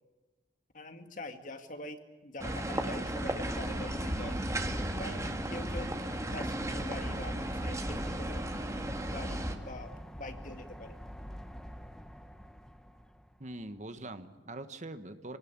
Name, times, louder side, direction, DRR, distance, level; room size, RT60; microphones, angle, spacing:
voice 1, 0.7-4.4 5.0-5.2 5.5-5.9 6.3-8.5 9.0-11.0, left 2 dB, 45° left, 6 dB, 2.1 m, -44 dB
sound 1, 2.4-9.5, right 1 dB, 15° right, 1.8 m, -35 dB
sound 2, 3.4-13.6, equal, 5° left, 1.1 m, -45 dB
voice 2, 13.4-15.4, right 2 dB, 40° right, 10 dB, 1.3 m, -43 dB
27.0 x 18.5 x 8.8 m, 1.3 s
head